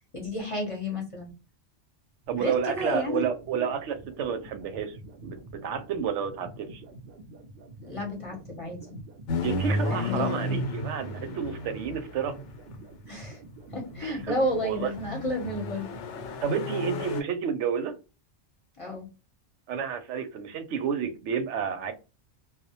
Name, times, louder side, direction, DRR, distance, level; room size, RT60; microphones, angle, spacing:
voice 1, 0.1-1.3 2.4-3.2 7.8-9.0 9.9-10.6 13.1-13.4 13.7-15.9 18.8-19.1, left 1 dB, 35° left, 0.6 m, -31 dB
sound 1, 2.2-16.5, right 2 dB, 60° right, 0.6 m, -47 dB
voice 2, 2.3-5.0 5.2-5.4 5.6-6.8 9.4-12.4 14.0-14.4 14.6-14.9 16.4-18.0 19.7-21.9, right 7 dB, 90° right, 0.9 m, -30 dB
sound 2, 9.3-12.8 13.9-17.2, left 2 dB, 85° left, 0.9 m, -33 dB
2.2 x 2.0 x 2.8 m
omnidirectional pair, 1.2 m